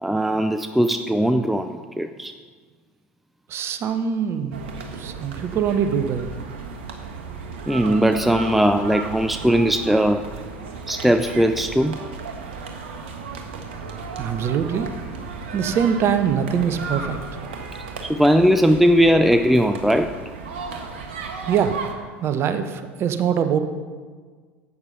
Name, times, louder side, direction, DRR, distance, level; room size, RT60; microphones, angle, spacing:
voice 1, 0.0-2.3 7.7-10.3 10.9-12.0 18.0-20.2, equal, ahead, 9 dB, 0.5 m, -19 dB
voice 2, 3.5-4.6 5.0-6.3 14.2-14.9 15.5-17.2 21.5-21.8 22.2-23.6, right 8 dB, 40° right, 9 dB, 1.0 m, -23 dB
sound 1, 4.5-21.9, right 5 dB, 60° right, 1.4 m, -35 dB
12.0 x 8.3 x 5.7 m, 1.5 s
figure-of-eight pair, 70°, 7 cm